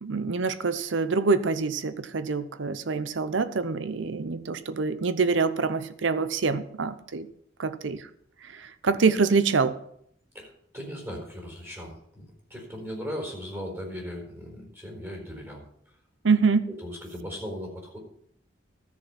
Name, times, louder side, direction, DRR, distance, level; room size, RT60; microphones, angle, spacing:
voice 1, 0.0-7.3 7.6-8.1 8.5-9.7 16.2-16.6, right 4 dB, 70° right, 14 dB, 0.7 m, -25 dB
voice 2, 10.3-15.6 16.7-18.0, equal, 15° right, 0 dB, 4.3 m, -38 dB
13.5 x 6.8 x 5.7 m, 0.69 s
head